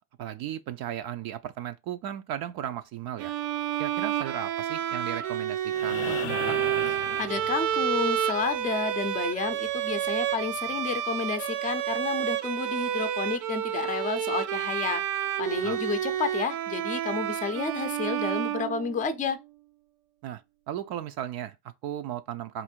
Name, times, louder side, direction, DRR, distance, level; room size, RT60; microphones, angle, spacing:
voice 1, 0.2-3.3 3.8-6.6 15.6-15.9 20.2-22.6, right 11 dB, 55° right, 0.5 m, -36 dB
Bowed string instrument, 3.2-19.3, right 11 dB, 90° right, 0.8 m, -30 dB
sound 1, 5.7-8.0 9.9-10.0, left 14 dB, 65° left, 0.5 m, -37 dB
voice 2, 7.2-15.0 15.4-19.4, left 5 dB, 20° left, 0.5 m, -31 dB
4.0 x 2.6 x 4.4 m
cardioid pair, 115°, 44 cm